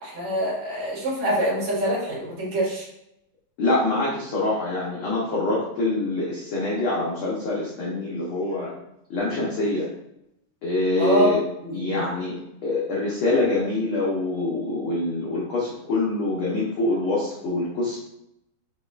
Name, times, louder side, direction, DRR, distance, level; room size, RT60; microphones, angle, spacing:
voice 1, 0.0-2.9 11.0-11.4 11.6-12.0, equal, 65° right, -6 dB, 2.8 m, -25 dB
voice 2, 3.6-8.7 9.1-9.9 10.6-11.4 11.7-12.3 12.6-18.0, left 2 dB, 85° left, -5 dB, 1.1 m, -25 dB
6.4 x 3.2 x 2.4 m, 0.80 s
omnidirectional pair, 3.7 m